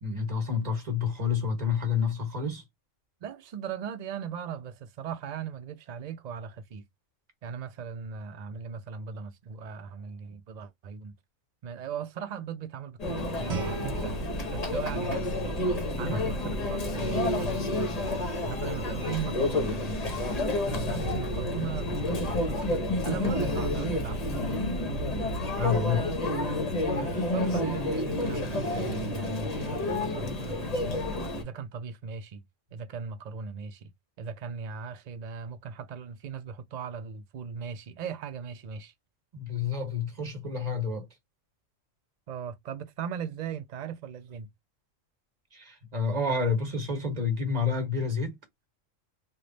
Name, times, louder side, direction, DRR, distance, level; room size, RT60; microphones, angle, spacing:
voice 1, 0.0-2.6 16.0-16.2 25.6-26.1 39.3-41.1 45.5-48.4, left 5 dB, 35° right, 1.2 m, -29 dB
voice 2, 3.2-6.8 7.4-11.1 11.6-14.2 14.5-15.6 16.0-17.9 18.4-20.3 20.7-22.6 22.9-24.2 27.0-31.1 31.4-32.4 32.7-33.9 34.2-38.9 42.3-44.5, right 7 dB, 85° right, 0.3 m, -38 dB
Conversation / Chatter / Crowd, 13.0-31.4, left 1 dB, 35° left, 0.8 m, -30 dB
Guitar, 13.5-16.2, right 6 dB, 70° right, 0.9 m, -40 dB
3.2 x 2.3 x 3.8 m
omnidirectional pair, 1.3 m